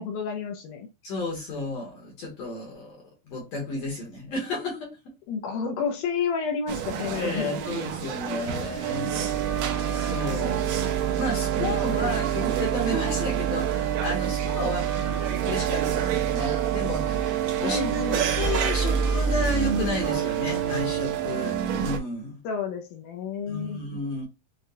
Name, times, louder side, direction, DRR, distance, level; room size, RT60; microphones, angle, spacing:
voice 1, 0.0-0.9 5.3-7.5 11.6-12.2 17.6-18.3 22.4-23.8, left 5 dB, 75° left, 2.1 m, -31 dB
voice 2, 1.0-5.1 7.1-9.3 10.0-14.9 15.4-22.4 23.5-24.3, left 2 dB, 60° left, 2.1 m, -33 dB
sound 1, 6.7-22.0, right 8 dB, 75° right, 1.7 m, -26 dB
6.6 x 2.3 x 2.6 m
omnidirectional pair, 4.0 m